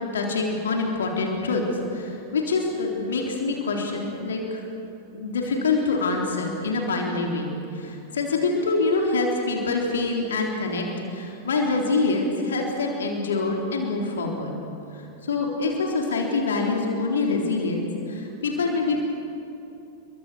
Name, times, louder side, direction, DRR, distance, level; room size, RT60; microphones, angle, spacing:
voice 1, 0.1-1.6 1.9-4.6 5.1-10.9 11.1-14.5 14.9-19.1, left 3 dB, 65° left, 1 dB, 3.7 m, -25 dB
29.0 x 23.5 x 6.3 m, 2.9 s
figure-of-eight pair, 90°, 0 cm